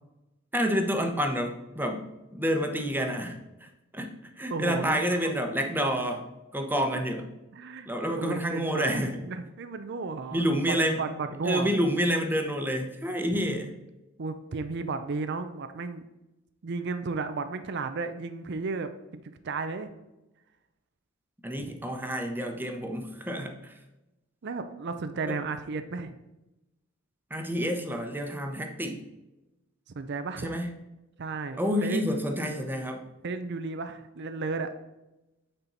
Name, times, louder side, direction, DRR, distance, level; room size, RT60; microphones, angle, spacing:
voice 1, 0.5-3.7 3.9-6.2 6.5-7.3 7.9-9.2 10.3-11.0 11.4-13.7 21.4-23.7 27.3-29.0 30.4-30.8 31.6-33.0, equal, 10° right, 4 dB, 0.9 m, -29 dB
voice 2, 4.5-5.4 7.5-11.7 13.3-13.4 14.2-16.1 16.6-19.9 21.6-21.7 24.4-26.2 29.9-30.6 31.2-32.0 33.2-34.7, right 4 dB, 55° right, 10 dB, 0.5 m, -34 dB
8.9 x 4.4 x 3.9 m, 0.98 s
head